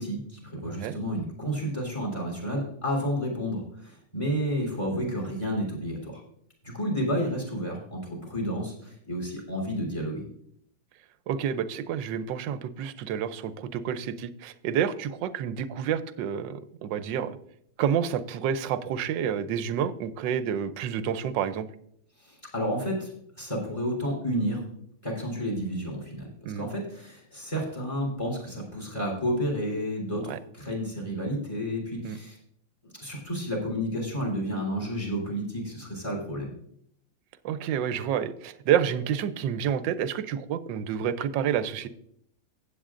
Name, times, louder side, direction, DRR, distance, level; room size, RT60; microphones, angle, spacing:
voice 1, 0.0-6.2 6.6-10.2 22.2-23.1 23.4-24.7 25.0-32.4 32.8-36.5, equal, 15° left, -2 dB, 3.6 m, -31 dB
voice 2, 0.7-1.0 4.9-5.2 11.3-17.4 17.8-21.7 26.4-26.7 30.3-30.4 32.0-32.2 37.4-41.9, right 8 dB, 75° right, 12 dB, 1.3 m, -29 dB
15.5 x 8.6 x 2.5 m, 0.69 s
omnidirectional pair, 2.1 m